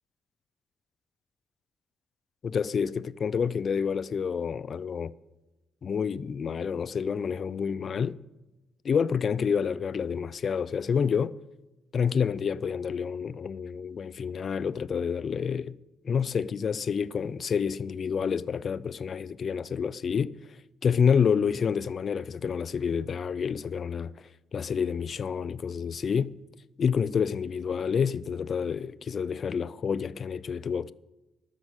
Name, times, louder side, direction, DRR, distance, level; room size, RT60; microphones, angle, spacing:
voice 1, 2.4-5.1 5.8-8.2 8.8-11.4 11.9-15.7 16.0-20.3 20.8-24.1 24.5-26.4 26.8-30.9, left 6 dB, 50° left, 0.4 m, -28 dB
12.5 x 6.5 x 8.0 m
cardioid pair, 100°, 0 cm